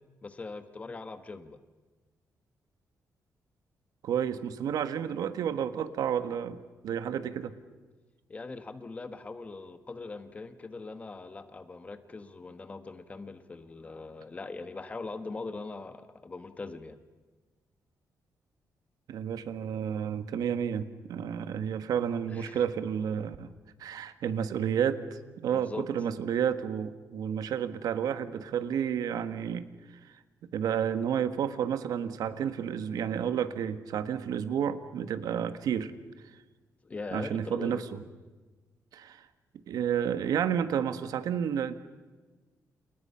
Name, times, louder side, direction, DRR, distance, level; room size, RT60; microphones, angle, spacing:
voice 1, 0.2-1.6 8.3-17.0 22.3-22.6 25.5-25.8 36.8-37.8, left 3 dB, 20° left, 10 dB, 1.4 m, -41 dB
voice 2, 4.0-6.6 6.8-7.5 19.1-23.5 23.8-29.7 30.5-35.9 37.1-37.8 38.9-39.2 39.7-41.7, right 8 dB, 85° right, 11 dB, 1.5 m, -31 dB
29.0 x 29.0 x 5.8 m, 1.3 s
wide cardioid pair, 175°, 6 cm